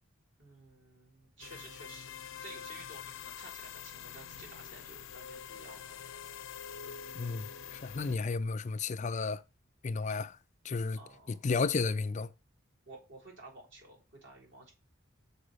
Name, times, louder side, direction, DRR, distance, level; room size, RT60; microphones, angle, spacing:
voice 1, 0.4-5.9 11.0-11.5 12.9-14.7, right 2 dB, 60° right, 3.9 m, -53 dB
sound 1, 1.4-8.2, left 8 dB, 75° left, 0.6 m, -45 dB
voice 2, 7.1-9.4 9.8-10.4 10.6-11.0 11.3-12.3, left 4 dB, 35° left, 0.4 m, -33 dB
6.2 x 4.9 x 6.6 m
head